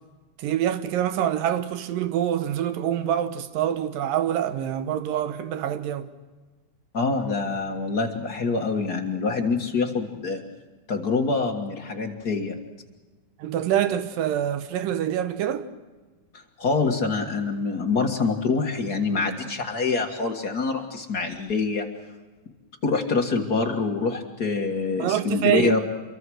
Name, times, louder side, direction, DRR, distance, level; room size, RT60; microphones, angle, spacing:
voice 1, 0.4-6.1 13.4-15.7 25.0-25.8, right 10 dB, 70° right, 2.5 m, -25 dB
voice 2, 6.9-10.4 10.9-12.5 16.3-21.9 22.8-25.8, left 4 dB, 50° left, 1.1 m, -25 dB
27.0 x 23.5 x 6.3 m
omnidirectional pair, 4.5 m